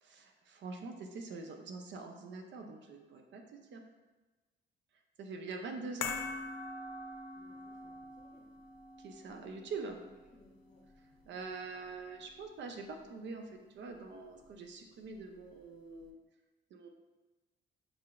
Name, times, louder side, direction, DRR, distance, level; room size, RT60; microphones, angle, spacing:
voice 1, 0.0-3.8 5.2-6.1 9.0-10.0 11.3-16.2 16.7-16.9, right 4 dB, 65° right, 4 dB, 0.6 m, -44 dB
sound 1, 6.0-12.4 12.7-12.8, left 4 dB, 80° left, 0.5 m, -44 dB
voice 2, 7.3-8.5 9.9-10.8, left 2 dB, 40° left, -1 dB, 1.1 m, -64 dB
6.1 x 2.8 x 2.4 m, 1.2 s
cardioid pair, 90°, 20 cm